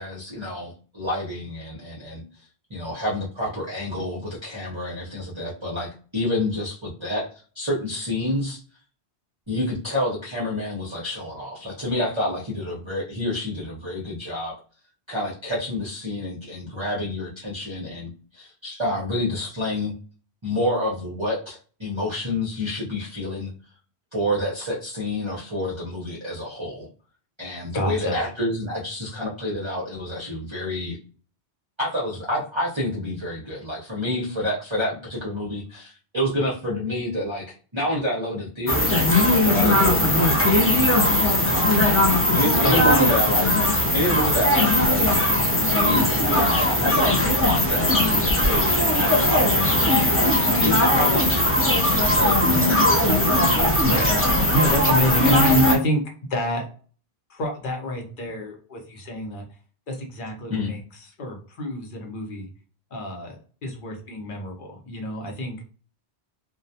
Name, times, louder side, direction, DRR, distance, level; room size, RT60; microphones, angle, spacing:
voice 1, 0.0-2.2 2.7-7.3 7.5-8.6 9.5-14.5 15.1-19.9 20.4-23.5 24.1-26.9 27.4-31.0 31.8-39.0 39.4-40.5 40.9-42.0 42.3-43.5 43.9-45.1 45.7-47.1 47.4-53.1 60.5-60.7, left 1 dB, 35° right, -5 dB, 0.6 m, -28 dB
voice 2, 27.7-28.2 42.6-43.1 53.8-54.2 54.5-56.0 56.3-56.6 57.3-59.5 59.9-62.5 62.9-63.3 63.6-65.6, equal, 55° left, 1 dB, 0.8 m, -27 dB
sound 1, 38.7-55.8, left 1 dB, 25° left, 0.3 m, -19 dB
2.3 x 2.2 x 2.6 m, 0.40 s
omnidirectional pair, 1.1 m